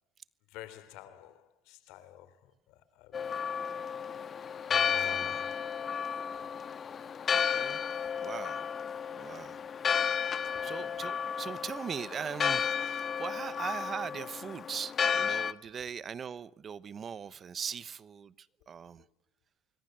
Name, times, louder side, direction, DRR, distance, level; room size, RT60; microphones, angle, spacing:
voice 1, 0.5-3.3 4.6-5.8 6.3-6.4 7.3-7.4 10.3-10.7, left 12 dB, 75° left, 3.6 m, -50 dB
Church bell, 3.1-15.5, left 7 dB, 35° left, 1.4 m, -33 dB
voice 2, 5.0-5.4 7.3-7.9 8.2-8.6 9.1-9.6 10.0-19.0, right 7 dB, 35° right, 1.0 m, -40 dB
25.5 x 22.0 x 7.8 m
cardioid pair, 115°, 0 cm